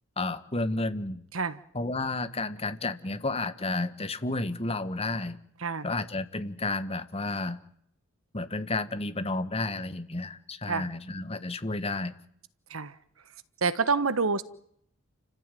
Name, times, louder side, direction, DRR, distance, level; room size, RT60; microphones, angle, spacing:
voice 1, 0.2-1.2 1.7-5.4 5.8-7.6 8.3-12.2, left 2 dB, 30° left, 11 dB, 1.6 m, -31 dB
voice 2, 13.6-14.4, right 4 dB, 80° right, 15 dB, 1.3 m, -27 dB
30.0 x 15.0 x 9.3 m, 0.71 s
head